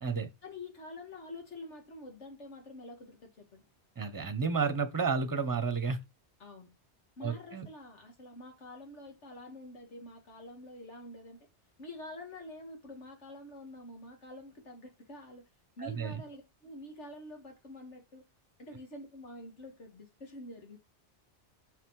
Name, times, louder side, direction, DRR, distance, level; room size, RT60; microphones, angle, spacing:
voice 1, 0.4-3.6 6.4-6.7 7.2-11.5 11.8-15.5 15.8-18.3 18.6-20.8, left 1 dB, 80° left, 2.3 m, -47 dB
voice 2, 4.0-6.0 7.2-7.7 15.8-16.2, right 5 dB, 20° right, 0.9 m, -31 dB
6.4 x 5.6 x 4.8 m
omnidirectional pair, 1.2 m